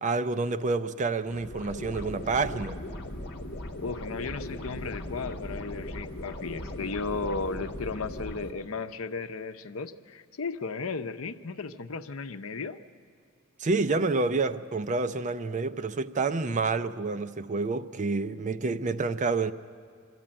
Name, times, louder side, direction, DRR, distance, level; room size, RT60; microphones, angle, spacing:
voice 1, 0.0-2.8 13.6-19.5, right 3 dB, 35° right, 0.5 m, -28 dB
sound 1, 1.3-8.5, left 1 dB, 55° left, 1.2 m, -38 dB
voice 2, 3.8-12.8, left 4 dB, 75° left, 0.7 m, -35 dB
23.0 x 14.0 x 8.8 m
head